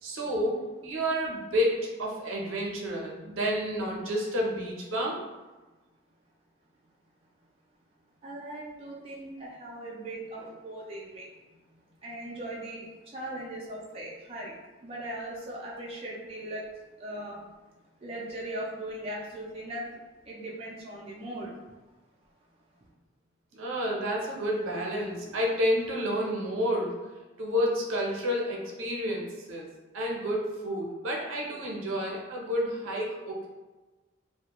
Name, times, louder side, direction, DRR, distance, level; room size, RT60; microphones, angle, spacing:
voice 1, 0.0-0.6 0.8-5.2 23.5-26.9 27.4-29.7 29.9-33.5, equal, 90° right, -2 dB, 0.6 m, -30 dB
voice 2, 8.2-11.2 12.0-12.8 13.1-14.5 14.8-16.6 17.0-17.4 18.0-21.5 24.3-24.4 25.0-25.4, right 1 dB, 30° right, -4 dB, 0.3 m, -39 dB
2.3 x 2.1 x 2.8 m, 1.2 s
head